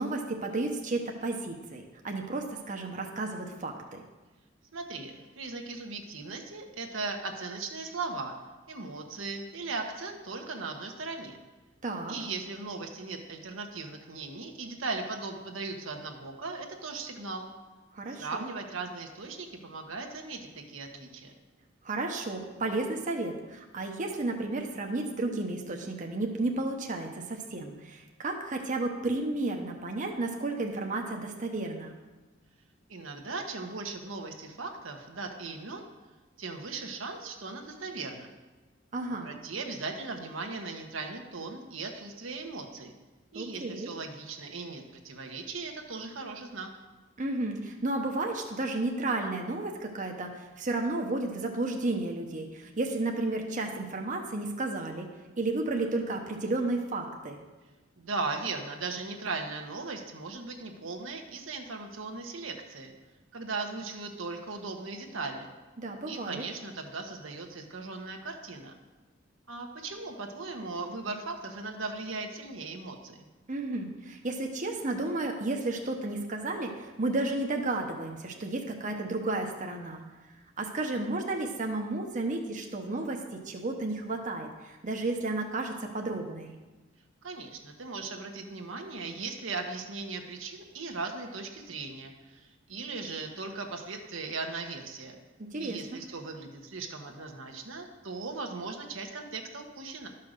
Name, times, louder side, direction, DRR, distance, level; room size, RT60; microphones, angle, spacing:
voice 1, 0.0-4.0 11.8-12.1 17.9-18.5 21.8-31.9 38.9-39.3 43.3-43.9 47.2-55.1 55.4-57.4 65.8-66.4 73.5-80.0 80.6-86.5 95.4-96.0, right 2 dB, 40° right, 2 dB, 1.0 m, -32 dB
voice 2, 4.7-8.4 8.7-11.4 12.1-17.5 18.1-21.3 32.9-35.9 36.4-38.3 39.1-42.9 43.3-46.7 58.0-62.9 63.3-65.5 66.0-68.7 69.5-73.3 87.2-95.2 95.6-100.1, right 3 dB, 80° right, 3 dB, 1.3 m, -38 dB
12.0 x 5.7 x 6.6 m, 1.2 s
head